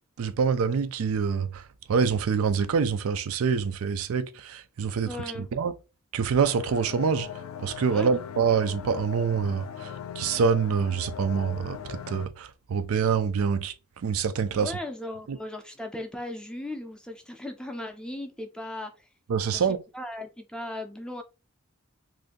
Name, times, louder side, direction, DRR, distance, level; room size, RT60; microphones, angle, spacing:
voice 1, 0.2-1.6 1.9-5.2 5.5-5.7 6.1-7.3 7.6-9.9 10.2-13.7 14.0-14.7 15.3-15.4 19.3-19.8, right 6 dB, 85° right, 0.4 m, -26 dB
voice 2, 5.0-5.5 7.9-8.2 14.5-19.1 19.5-21.2, left 1 dB, 5° left, 0.4 m, -37 dB
sound 1, 6.5-12.3, left 8 dB, 70° left, 0.3 m, -40 dB
2.6 x 2.5 x 3.7 m
head